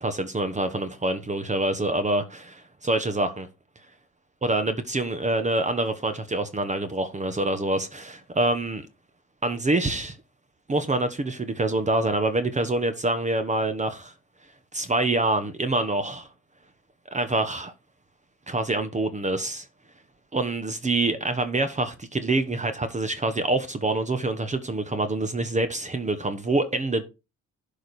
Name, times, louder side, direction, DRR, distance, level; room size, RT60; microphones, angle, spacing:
voice 1, 0.0-3.5 4.4-8.9 9.4-10.2 10.7-14.1 14.7-16.3 17.1-17.7 18.5-19.6 20.3-27.0, right 2 dB, 25° right, 1.1 m, -26 dB
11.0 x 5.1 x 4.2 m
cardioid pair, 90°, 30 cm